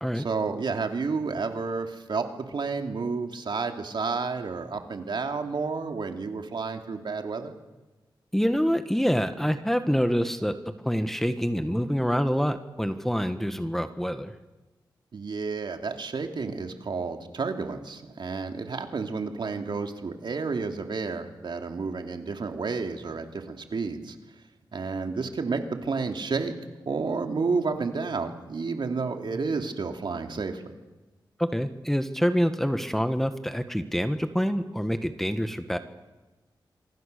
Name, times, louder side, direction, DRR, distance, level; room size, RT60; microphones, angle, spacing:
voice 1, 0.1-7.5 15.1-24.2 24.7-26.5 26.9-30.7, right 4 dB, 65° right, 5 dB, 2.7 m, -31 dB
voice 2, 8.3-10.6 10.8-14.3 31.4-35.8, equal, 5° left, 9 dB, 1.6 m, -26 dB
27.0 x 24.5 x 6.8 m, 1.2 s
cardioid pair, 70°, 8 cm